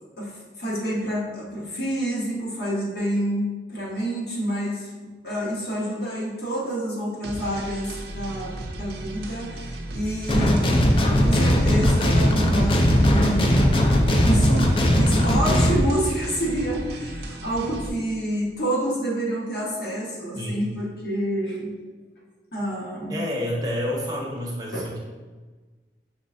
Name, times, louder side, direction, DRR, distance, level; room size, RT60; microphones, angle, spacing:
voice 1, 0.2-13.7 14.2-21.7 22.5-23.2 24.7-24.9, right 1 dB, 60° left, -5 dB, 1.2 m, -28 dB
sound 1, 7.2-17.9, right 1 dB, 70° right, 0.5 m, -35 dB
sound 2, 10.3-15.8, equal, 30° left, 0.4 m, -19 dB
voice 2, 20.3-20.7 23.1-25.0, left 1 dB, 20° right, -3 dB, 0.7 m, -29 dB
5.7 x 3.2 x 2.6 m, 1.3 s
head